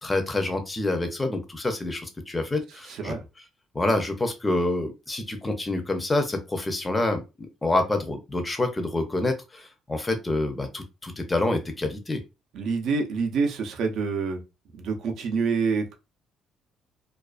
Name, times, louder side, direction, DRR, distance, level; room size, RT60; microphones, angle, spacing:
voice 1, 0.0-3.2 3.7-12.2, left 2 dB, 15° left, 6 dB, 0.5 m, -27 dB
voice 2, 12.5-14.4 14.7-15.9, right 4 dB, 65° right, 5 dB, 0.6 m, -26 dB
2.3 x 2.3 x 2.3 m, 0.27 s
cardioid pair, 125°, 0 cm